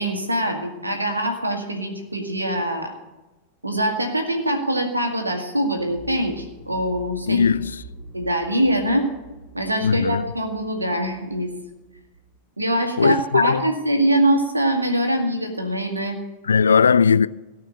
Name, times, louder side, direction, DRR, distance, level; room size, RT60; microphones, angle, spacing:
voice 1, 0.0-2.9 3.6-7.5 8.1-9.1 9.5-11.5 12.6-16.2, right 1 dB, 85° right, 2.1 m, -23 dB
sound 1, 5.8-13.5 13.8-13.9, right 4 dB, 55° right, 3.4 m, -45 dB
voice 2, 7.3-7.7 9.8-10.2 13.0-13.6 16.5-17.3, left 6 dB, 70° left, 0.3 m, -18 dB
17.0 x 5.9 x 8.6 m
figure-of-eight pair, 90°, 0 cm